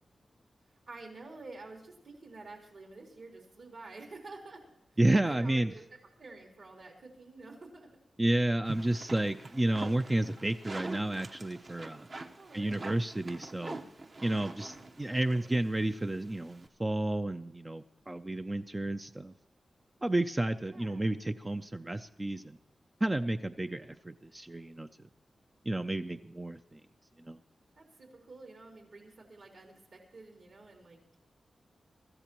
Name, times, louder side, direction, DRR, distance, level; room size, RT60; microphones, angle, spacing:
voice 1, 0.9-4.6 5.2-7.9 12.4-13.0 15.0-15.5 20.6-21.1 27.8-31.0, right 3 dB, 60° right, -1 dB, 3.9 m, -50 dB
voice 2, 5.0-5.7 8.2-12.1 12.5-13.8 14.2-19.3 20.0-22.6 23.0-24.9 25.7-26.8 27.2-27.4, right 1 dB, 15° right, 8 dB, 0.4 m, -31 dB
sound 1, 8.6-16.7, right 2 dB, 40° right, 1.0 m, -45 dB
24.5 x 14.0 x 3.0 m, 0.78 s
wide cardioid pair, 155°, 0 cm